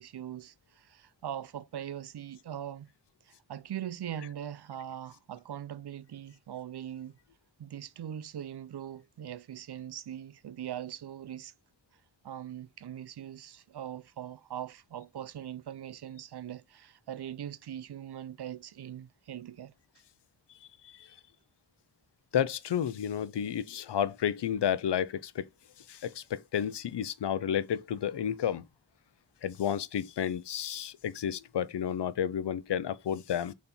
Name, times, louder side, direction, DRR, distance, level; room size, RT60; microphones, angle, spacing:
voice 1, 0.0-2.9 3.2-7.2 7.6-11.5 12.2-19.7, right 10 dB, 70° right, 0.6 m, -41 dB
voice 2, 20.6-21.1 22.3-25.5 25.9-28.7 29.4-33.5, left 9 dB, 85° left, 0.7 m, -31 dB
5.2 x 4.2 x 4.2 m
wide cardioid pair, 70°, 41 cm